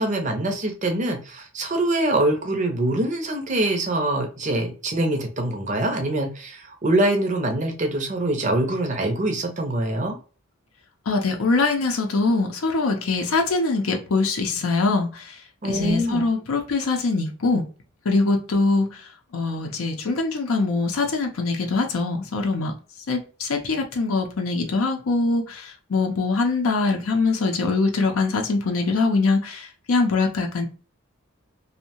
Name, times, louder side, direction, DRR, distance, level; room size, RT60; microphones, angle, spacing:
voice 1, 0.0-10.2 15.6-16.2, right 1 dB, 35° right, 0.5 m, -24 dB
voice 2, 11.1-17.6 18.1-22.7 23.1-30.7, left 3 dB, 75° left, 0.5 m, -23 dB
2.6 x 2.1 x 2.8 m
head